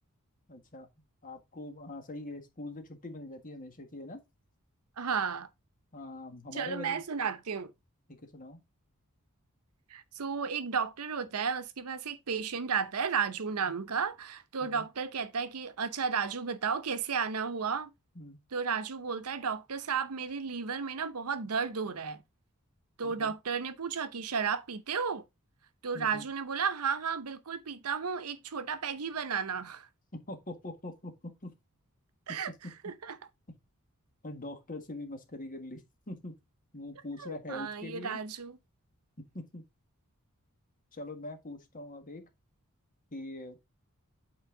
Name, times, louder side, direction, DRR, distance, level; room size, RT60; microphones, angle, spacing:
voice 1, 0.5-0.9 1.2-4.2 5.9-7.0 8.3-8.6 14.6-14.9 18.1-18.4 23.0-23.3 25.9-26.2 30.1-31.5 32.5-32.6 34.2-36.3 36.7-38.2 39.3-39.6 40.9-42.3 43.1-43.6, left 1 dB, 40° left, 1.7 m, -43 dB
voice 2, 5.0-5.5 6.5-7.7 9.9-17.9 18.5-22.2 23.0-25.2 25.8-29.9 32.3-32.5 32.8-33.2 37.2-38.6, right 6 dB, 75° right, 0.8 m, -33 dB
8.7 x 4.4 x 3.8 m
head